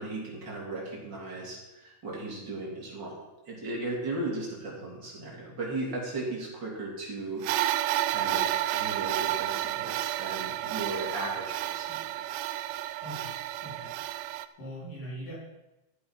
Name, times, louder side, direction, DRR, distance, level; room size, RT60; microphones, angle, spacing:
voice 1, 0.0-7.4 8.1-12.2, right 2 dB, 35° right, -3 dB, 3.9 m, -36 dB
sound 1, 7.4-14.5, right 13 dB, 85° right, 2.1 m, -31 dB
voice 2, 13.0-14.0 14.6-15.3, equal, 90° left, -7 dB, 6.2 m, -41 dB
13.5 x 8.5 x 5.9 m, 0.97 s
omnidirectional pair, 3.7 m